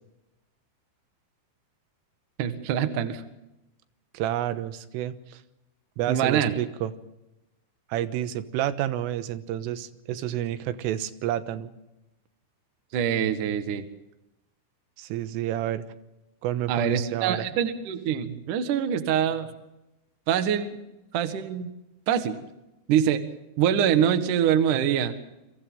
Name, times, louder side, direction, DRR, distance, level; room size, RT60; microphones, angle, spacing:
voice 1, 2.4-3.2 6.1-6.5 12.9-13.9 16.7-19.5 20.3-20.8 21.1-21.7 22.1-22.4 22.9-23.2 23.6-25.2, right 9 dB, 60° right, 9 dB, 2.3 m, -24 dB
voice 2, 4.1-5.4 6.0-6.9 7.9-11.7 15.0-15.9 16.4-17.5, right 12 dB, 90° right, 11 dB, 3.7 m, -29 dB
29.5 x 24.0 x 3.8 m, 0.93 s
omnidirectional pair, 5.6 m